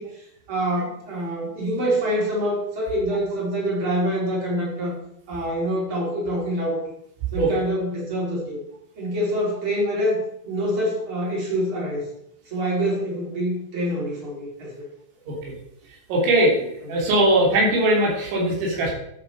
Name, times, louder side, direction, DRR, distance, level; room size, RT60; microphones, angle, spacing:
voice 1, 0.0-4.9 5.3-6.8 7.3-8.6 9.0-12.1 12.4-14.9 16.8-16.9, equal, 30° right, -4 dB, 4.6 m, -26 dB
voice 2, 16.1-18.9, right 1 dB, 75° right, -2 dB, 5.6 m, -20 dB
12.5 x 8.2 x 4.9 m, 0.75 s
omnidirectional pair, 5.4 m